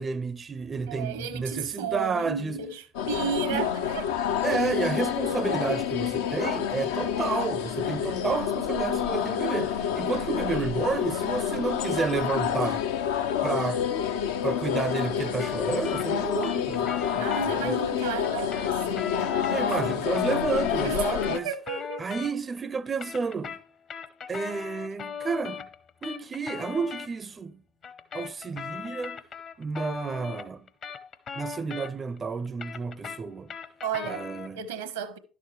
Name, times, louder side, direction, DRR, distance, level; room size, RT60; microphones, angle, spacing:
voice 1, 0.0-2.6 3.5-3.6 4.4-12.9 13.4-13.9 14.4-17.8 19.5-21.5 22.0-23.6 24.3-25.7 26.0-27.6 28.1-29.2 29.6-30.7 31.4-33.5 34.1-34.6, right 4 dB, 30° right, 0.4 m, -31 dB
voice 2, 0.9-4.1 17.2-19.7 20.8-22.1 33.8-34.3 34.5-35.2, right 7 dB, 85° right, 1.0 m, -33 dB
sound 1, 2.9-21.4, left 9 dB, 75° left, 0.5 m, -28 dB
sound 2, 15.4-17.5 18.2-22.6 22.9-27.1 27.8-32.2 32.5-34.6, left 7 dB, 50° left, 0.9 m, -39 dB
11.0 x 6.7 x 3.3 m
hypercardioid pair, 65°, 0 cm